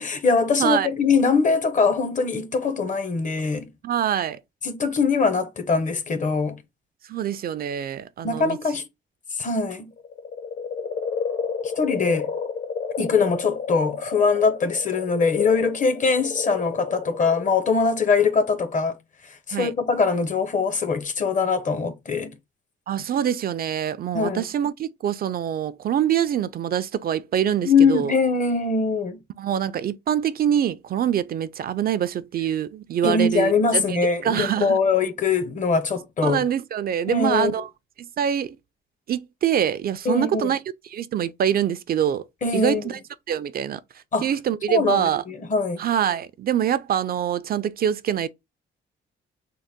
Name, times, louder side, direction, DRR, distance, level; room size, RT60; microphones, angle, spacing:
voice 1, 0.0-3.7 4.6-6.6 8.2-8.8 9.3-9.9 11.6-12.3 13.0-19.0 19.2-22.3 24.1-24.4 27.6-29.2 33.0-36.4 37.1-37.5 40.0-40.5 42.4-42.8 44.1-44.3 44.7-45.8, left 4 dB, 40° left, 0.8 m, -22 dB
voice 2, 3.8-4.4 7.1-8.6 19.5-19.7 22.9-28.1 29.4-34.8 36.2-37.7 38.2-38.6 39.1-40.6 40.9-42.2 42.5-43.0 43.3-43.8 44.2-45.2 45.8-48.3, right 9 dB, 50° right, 0.4 m, -24 dB
sound 1, 10.0-18.7, left 5 dB, 70° left, 1.8 m, -31 dB
3.7 x 2.1 x 3.5 m
cardioid pair, 90°, 20 cm